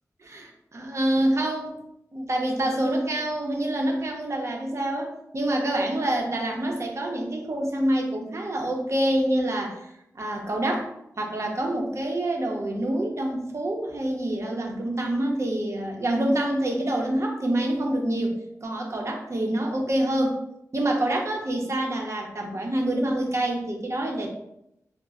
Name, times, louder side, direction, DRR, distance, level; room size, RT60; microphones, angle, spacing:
voice 1, 0.2-1.8 2.1-20.4 20.7-24.3, right 1 dB, 50° right, 1 dB, 0.7 m, -26 dB
4.1 x 2.1 x 2.4 m, 0.80 s
cardioid pair, 50°, 6 cm